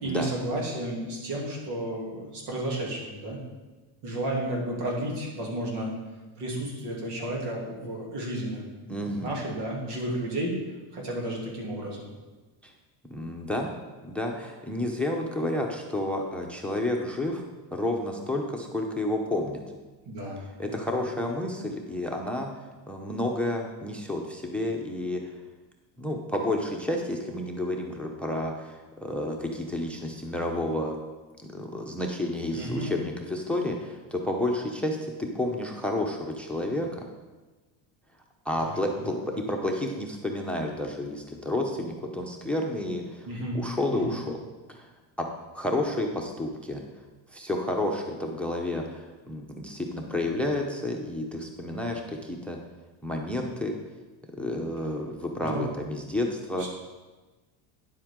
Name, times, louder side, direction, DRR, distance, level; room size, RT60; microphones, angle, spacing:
voice 1, 0.0-3.4 4.0-5.9 6.4-8.6 9.0-10.5 10.9-12.1 20.1-20.9 32.5-32.9 38.6-39.1 43.2-43.6 44.0-44.1 55.4-55.7 56.6-56.7, right 1 dB, 85° right, -3 dB, 2.9 m, -32 dB
voice 2, 8.9-9.4 12.6-12.7 13.1-13.7 14.0-17.4 17.7-19.6 20.6-22.5 22.9-25.2 26.0-31.0 31.4-37.0 38.4-39.2 39.5-43.3 43.5-44.4 44.7-44.9 45.2-45.3 45.5-46.8 47.3-52.6 53.0-53.7 54.4-56.7, left 1 dB, ahead, 2 dB, 0.7 m, -30 dB
10.0 x 7.6 x 3.7 m, 1.2 s
cardioid pair, 130°, 50 cm